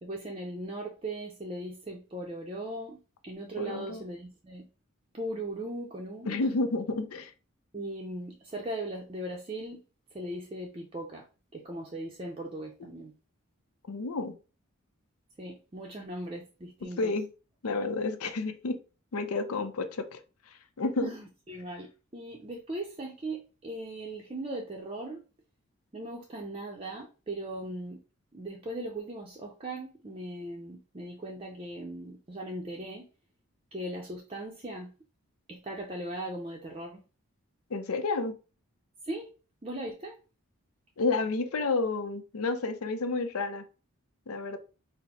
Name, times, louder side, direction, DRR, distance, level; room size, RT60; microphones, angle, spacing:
voice 1, 0.0-4.7 5.1-6.5 7.7-9.8 10.1-11.3 11.5-13.1 15.4-17.1 21.0-25.2 25.9-28.0 28.3-33.1 33.7-34.9 35.5-37.0 39.0-39.3 39.6-40.2, right 1 dB, 25° right, 0.5 m, -38 dB
voice 2, 3.6-4.0 6.3-7.3 13.9-14.3 17.0-17.3 17.6-18.8 19.1-20.2 20.8-21.1 37.7-38.3 41.0-43.6 44.3-44.6, left 3 dB, 85° left, 0.6 m, -30 dB
4.3 x 2.0 x 4.1 m
head